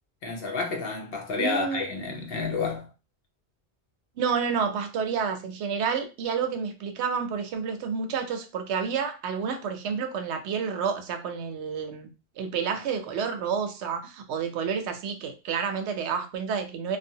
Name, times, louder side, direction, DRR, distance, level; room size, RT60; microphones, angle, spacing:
voice 1, 0.2-2.9, left 4 dB, 65° left, 0.9 m, -30 dB
voice 2, 1.4-1.9 4.2-12.1 12.4-17.0, right 6 dB, 80° right, 0.8 m, -29 dB
2.6 x 2.2 x 2.7 m
omnidirectional pair, 1.1 m